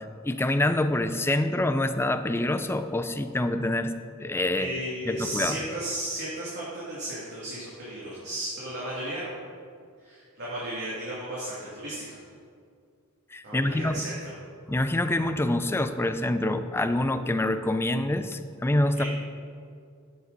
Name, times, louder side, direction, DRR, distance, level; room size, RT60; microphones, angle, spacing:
voice 1, 0.0-3.9 4.2-4.7 5.1-5.6 13.3-14.0 14.7-19.0, left 1 dB, 10° left, 9 dB, 0.4 m, -26 dB
voice 2, 4.5-9.3 10.0-12.2 13.4-14.3 19.0-19.1, right 1 dB, 55° right, -8 dB, 2.3 m, -34 dB
11.5 x 8.7 x 4.0 m, 2.2 s
head